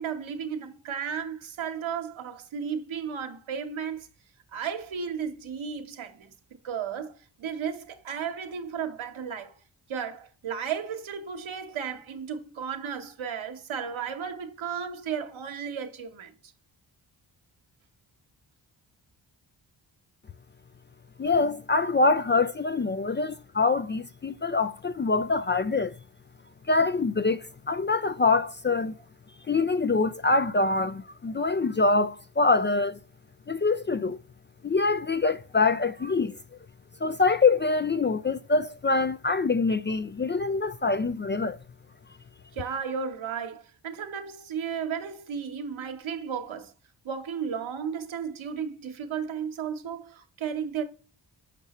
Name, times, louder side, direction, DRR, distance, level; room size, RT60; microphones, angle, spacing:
voice 1, 0.0-4.1 4.5-6.3 6.6-9.5 9.9-16.3 21.7-21.8 42.5-46.7 47.0-50.8, right 7 dB, 75° right, 1.2 m, -34 dB
voice 2, 21.2-25.9 26.7-27.4 27.7-28.9 29.5-33.0 33.5-34.2 34.6-36.3 37.0-41.6, left 3 dB, 25° left, 0.4 m, -24 dB
6.7 x 5.4 x 3.0 m
cardioid pair, 45°, 48 cm